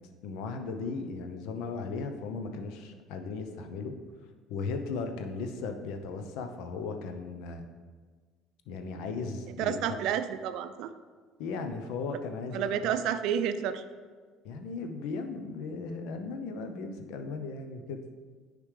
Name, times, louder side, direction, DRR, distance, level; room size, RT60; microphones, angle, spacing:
voice 1, 0.2-3.9 4.5-7.7 8.7-10.0 11.4-13.0 14.4-18.0, left 4 dB, 70° left, 6 dB, 0.7 m, -36 dB
voice 2, 9.6-10.9 12.5-13.8, right 9 dB, 65° right, 11 dB, 0.4 m, -30 dB
9.6 x 5.0 x 3.3 m, 1.5 s
hypercardioid pair, 65°, 0 cm